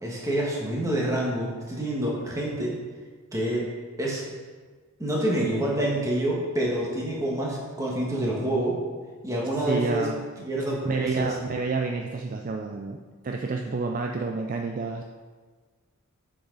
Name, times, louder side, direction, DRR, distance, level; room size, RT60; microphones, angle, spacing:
voice 1, 0.0-2.7 3.3-3.6 4.0-4.2 5.0-8.8 9.2-10.1 10.4-11.3, right 1 dB, 15° right, -3 dB, 1.6 m, -27 dB
voice 2, 9.6-10.2 10.8-15.0, right 4 dB, 40° right, 2 dB, 0.4 m, -29 dB
8.1 x 6.3 x 4.0 m, 1.4 s
head